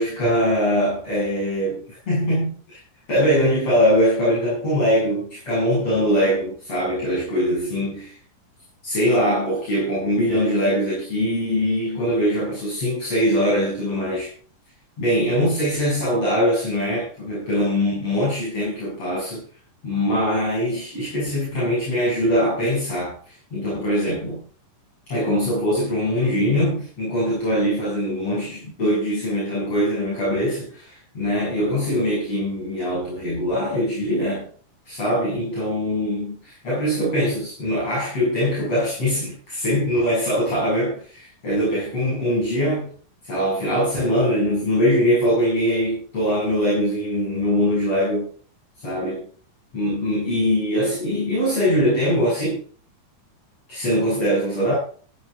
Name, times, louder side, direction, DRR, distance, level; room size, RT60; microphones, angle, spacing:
voice 1, 0.0-2.8 3.1-8.2 8.8-14.3 15.0-19.4 19.8-24.4 25.1-34.5 34.9-42.9 43.2-48.3 48.8-49.3 49.7-52.6 53.7-54.7, equal, 50° left, -8 dB, 9.1 m, -22 dB
17.0 x 11.0 x 3.9 m, 0.43 s
omnidirectional pair, 3.5 m